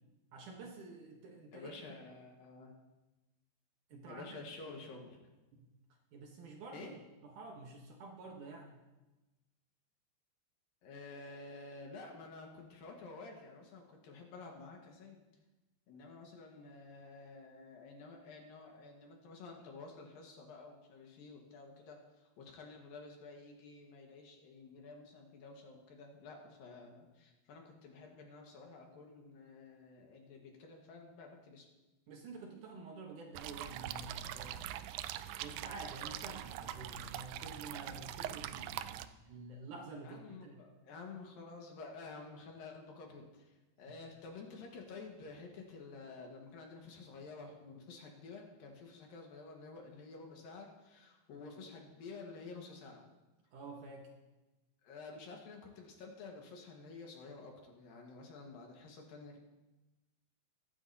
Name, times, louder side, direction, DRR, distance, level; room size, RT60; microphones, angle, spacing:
voice 1, 0.3-1.7 3.9-4.4 4.7-4.8 6.1-8.8 32.1-34.6 35.3-40.6 43.9-44.0 53.5-54.1, right 3 dB, 65° right, 0 dB, 2.3 m, -49 dB
voice 2, 1.5-2.7 4.1-5.3 6.7-6.9 10.8-15.2 15.9-31.7 40.0-53.0 54.8-59.4, left 3 dB, 70° left, 1 dB, 3.1 m, -51 dB
sound 1, 33.3-39.1, right 12 dB, 85° right, 2.0 m, -43 dB
23.0 x 9.8 x 2.8 m, 1.1 s
omnidirectional pair, 4.5 m